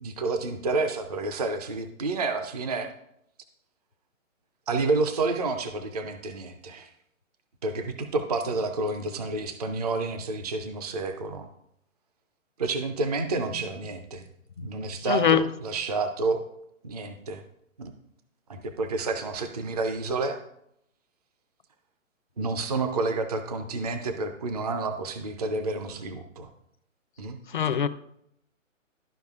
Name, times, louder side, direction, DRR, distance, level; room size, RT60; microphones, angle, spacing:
voice 1, 0.0-2.9 4.7-6.9 7.6-11.5 12.6-14.2 14.6-16.4 16.8-17.4 17.8-17.9 18.5-20.4 22.4-26.5 27.2-27.4, right 3 dB, 30° right, 7 dB, 0.4 m, -29 dB
voice 2, 15.1-15.4 27.5-27.9, left 8 dB, 40° left, 11 dB, 0.4 m, -22 dB
12.5 x 4.8 x 2.4 m, 0.75 s
hypercardioid pair, 160°, 40 cm